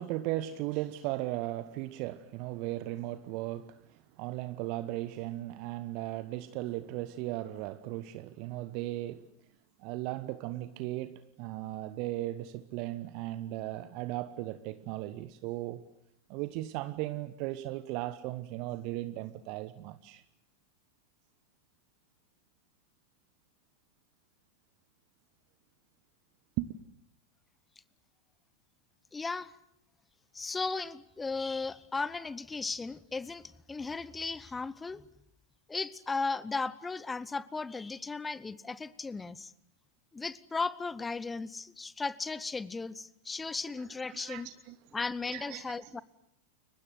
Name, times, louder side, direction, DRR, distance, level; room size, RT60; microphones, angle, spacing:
voice 1, 0.0-9.3 9.8-15.8 16.3-20.2 26.6-26.8 44.1-44.8 45.3-46.0, right 16 dB, 45° right, 13 dB, 1.1 m, -37 dB
voice 2, 29.1-29.5 30.3-35.0 35.7-39.5 40.1-44.5 44.9-46.0, left 4 dB, 10° left, 19 dB, 1.0 m, -36 dB
30.0 x 23.5 x 7.8 m, 0.75 s
figure-of-eight pair, 90°, 0 cm